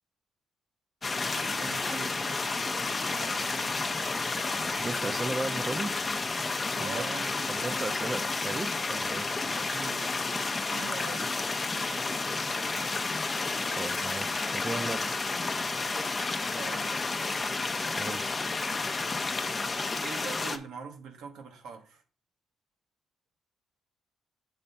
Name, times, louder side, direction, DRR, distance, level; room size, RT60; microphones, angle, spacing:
sound 1, 1.0-20.6, left 3 dB, 30° left, 0.7 m, -31 dB
voice 1, 1.3-3.8 6.8-8.0 9.5-10.4 10.7-11.4 11.7-12.6 15.9-16.0 16.5-17.3 20.0-22.0, right 5 dB, 85° right, 1.1 m, -44 dB
voice 2, 4.8-5.9 6.8-7.1 7.5-9.3 13.7-15.1 18.0-18.3, right 2 dB, 25° right, 0.6 m, -35 dB
7.2 x 3.3 x 5.4 m
cardioid pair, 90°, 0 cm